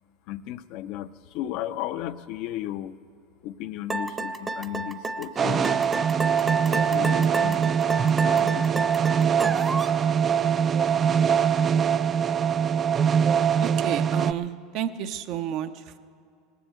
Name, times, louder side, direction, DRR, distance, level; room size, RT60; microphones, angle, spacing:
voice 1, 0.3-3.0 3.4-5.8 6.7-8.7, left 12 dB, 60° left, 12 dB, 0.5 m, -35 dB
sound 1, 3.9-10.0, right 2 dB, 15° right, 0.8 m, -30 dB
sound 2, 5.4-14.3, right 7 dB, 30° right, 0.3 m, -22 dB
voice 2, 13.6-16.0, right 10 dB, 60° right, 9 dB, 0.7 m, -31 dB
19.0 x 7.6 x 8.1 m, 2.3 s
supercardioid pair, 100°, 0 cm